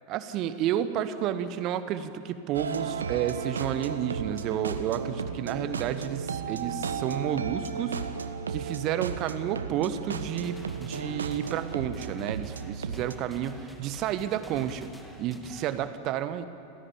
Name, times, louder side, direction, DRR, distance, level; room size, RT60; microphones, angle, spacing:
voice 1, 0.1-8.0 8.5-14.9 15.2-16.4, right 10 dB, 40° right, 12 dB, 1.3 m, -31 dB
sound 1, 2.5-13.2, right 6 dB, 70° right, 1.2 m, -34 dB
sound 2, 10.3-15.9, equal, ahead, 2.2 m, -49 dB
28.5 x 16.5 x 8.6 m, 2.9 s
figure-of-eight pair, 90°, 0 cm